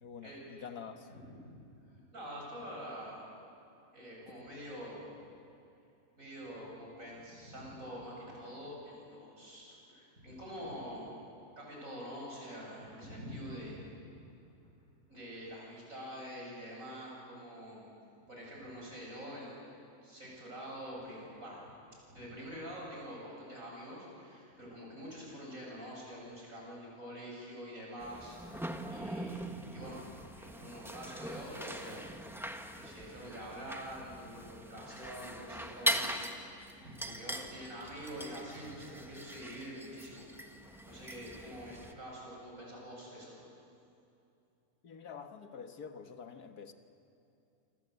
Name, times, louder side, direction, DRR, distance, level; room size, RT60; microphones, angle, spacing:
voice 1, 0.0-1.1 44.8-46.7, left 6 dB, 75° left, 7 dB, 1.9 m, -47 dB
voice 2, 1.9-3.2 3.9-5.1 6.2-11.1 11.6-13.9 14.1-14.2 15.1-17.9 18.3-19.5 20.0-21.6 22.1-30.0 30.4-32.1 32.4-36.2 36.5-40.2 40.8-43.3, equal, 55° right, -3 dB, 8.6 m, -46 dB
sound 1, 28.0-41.9, equal, ahead, 1.2 m, -41 dB
27.5 x 26.0 x 8.1 m, 2.7 s
omnidirectional pair, 1.7 m